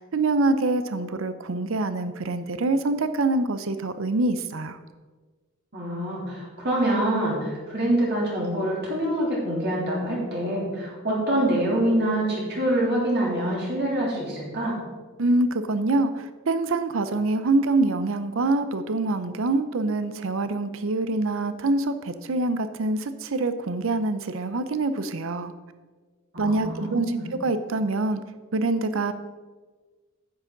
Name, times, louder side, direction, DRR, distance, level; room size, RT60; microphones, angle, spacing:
voice 1, 0.0-4.8 15.2-25.5 26.4-27.1 27.3-28.2 28.5-29.1, right 2 dB, 65° right, 11 dB, 0.6 m, -25 dB
voice 2, 5.7-14.8 26.3-27.3, right 1 dB, 50° right, -4 dB, 3.2 m, -25 dB
10.5 x 8.3 x 3.9 m, 1.4 s
head